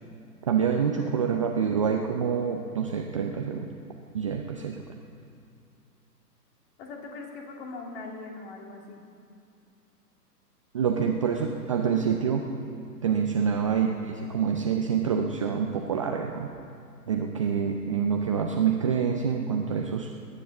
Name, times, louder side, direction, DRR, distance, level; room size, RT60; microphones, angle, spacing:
voice 1, 0.5-3.7 4.1-4.8 10.7-12.4 13.0-16.5 17.1-20.1, right 7 dB, 20° right, 2 dB, 0.5 m, -26 dB
voice 2, 1.0-1.3 6.8-9.0 13.2-13.4, left 3 dB, 40° left, 1 dB, 2.6 m, -41 dB
20.0 x 10.0 x 7.2 m, 2.4 s
figure-of-eight pair, 125°, 48 cm